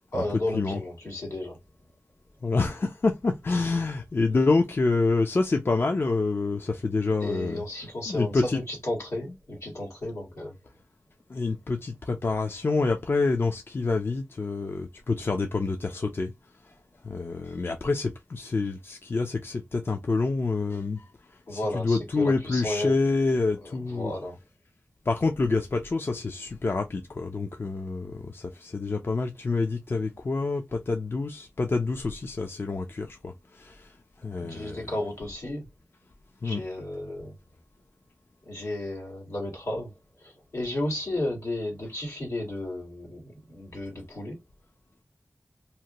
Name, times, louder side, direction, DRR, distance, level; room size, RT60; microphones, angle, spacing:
voice 1, 0.1-1.6 7.2-10.5 21.5-22.9 23.6-24.4 34.4-35.6 36.4-37.3 38.5-39.9 40.2-44.4, left 1 dB, 90° left, 1.7 m, -33 dB
voice 2, 2.4-7.6 8.1-8.6 11.3-16.3 17.0-21.0 21.5-24.1 25.1-33.9 34.2-34.8 36.4-36.6, left 3 dB, 50° left, 0.4 m, -27 dB
2.8 x 2.1 x 2.8 m
wide cardioid pair, 65°, 5 cm